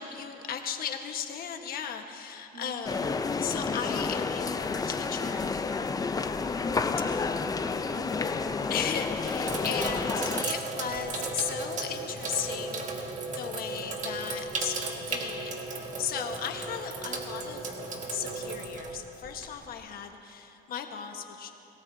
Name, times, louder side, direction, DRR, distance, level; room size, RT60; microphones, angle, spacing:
voice 1, 0.0-3.0 3.4-5.4 7.1-7.3 8.7-15.6 16.0-17.7 18.1-21.5, left 8 dB, 60° left, 5 dB, 1.4 m, -36 dB
voice 2, 2.5-3.1 6.6-8.6, right 1 dB, 70° right, -6 dB, 3.3 m, -46 dB
sound 1, 2.9-10.4, left 4 dB, 20° left, 0.6 m, -30 dB
Sink (filling or washing), 7.8-8.2 8.8-19.8, right 3 dB, 45° right, 1.8 m, -35 dB
25.5 x 18.0 x 2.8 m, 2.9 s
cardioid pair, 110°, 17 cm